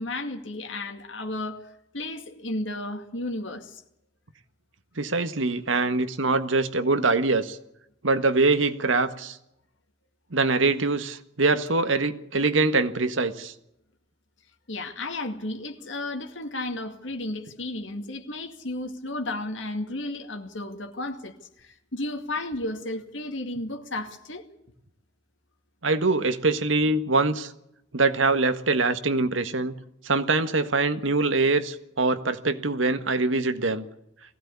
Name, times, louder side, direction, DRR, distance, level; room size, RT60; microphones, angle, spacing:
voice 1, 0.0-3.8 14.7-24.5, left 2 dB, 70° left, 2.2 m, -33 dB
voice 2, 5.0-7.6 8.0-9.4 10.3-13.5 25.8-27.5 27.9-29.7 30.0-33.8, right 3 dB, 80° right, 1.6 m, -23 dB
20.5 x 16.0 x 8.4 m
head